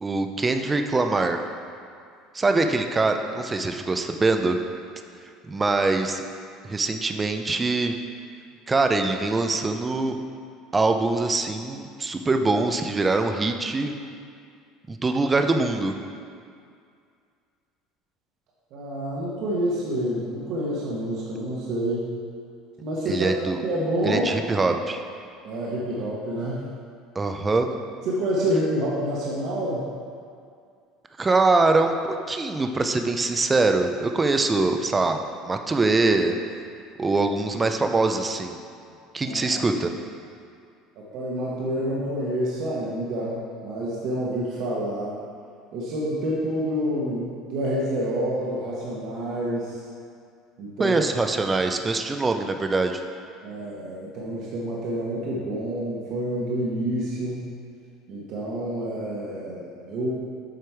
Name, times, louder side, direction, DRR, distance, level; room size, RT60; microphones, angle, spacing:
voice 1, 0.0-1.4 2.3-4.6 5.5-6.2 6.6-7.9 8.7-10.2 10.7-14.0 14.9-15.9 23.1-23.6 24.0-25.0 27.2-27.7 31.2-35.2 35.5-36.4 37.0-38.6 39.1-39.9 50.8-53.0, right 3 dB, 15° right, 6 dB, 0.5 m, -23 dB
voice 2, 18.7-22.1 22.8-23.3 23.6-24.3 25.4-26.6 28.0-29.8 39.2-39.6 41.0-45.2 45.7-49.8 50.6-51.0 53.4-57.4 58.1-60.1, right 1 dB, 55° right, -6 dB, 1.2 m, -28 dB
7.8 x 5.1 x 4.6 m, 2.3 s
cardioid pair, 140°, 0 cm